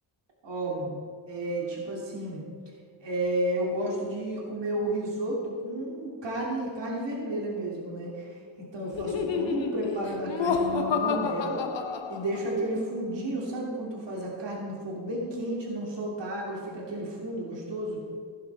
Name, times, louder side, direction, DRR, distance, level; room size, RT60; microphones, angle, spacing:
voice 1, 0.4-2.4 3.0-11.6 12.1-18.0, right 1 dB, 80° right, -3 dB, 3.0 m, -32 dB
Laughter, 8.9-12.6, left 5 dB, 90° left, 1.1 m, -29 dB
16.5 x 11.0 x 3.6 m, 2.2 s
cardioid pair, 80°, 43 cm